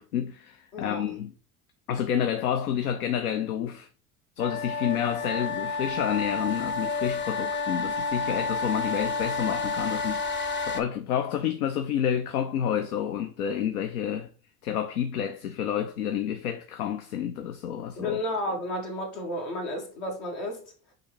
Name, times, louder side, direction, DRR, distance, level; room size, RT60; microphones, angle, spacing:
voice 1, 0.0-1.3 1.9-3.9 4.4-14.3 14.6-18.2, left 9 dB, 85° left, 0.5 m, -29 dB
voice 2, 0.7-1.0 18.0-20.6, left 1 dB, 70° left, 1.7 m, -32 dB
sound 1, 4.4-10.8, left 3 dB, 25° left, 0.7 m, -30 dB
4.0 x 2.5 x 4.6 m
hypercardioid pair, 70°, 43 cm